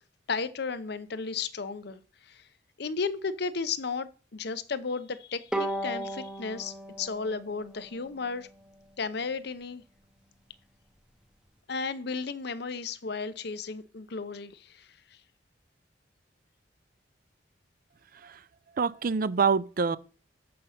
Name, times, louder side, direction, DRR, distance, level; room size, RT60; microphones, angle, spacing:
voice 1, 0.3-2.4 2.8-8.5 9.0-9.8 11.7-14.9, left 4 dB, 60° left, 0.7 m, -34 dB
Bowed string instrument, 5.5-8.8, right 1 dB, 5° right, 0.8 m, -36 dB
voice 2, 18.8-20.0, right 5 dB, 50° right, 0.5 m, -26 dB
7.7 x 5.2 x 5.7 m
head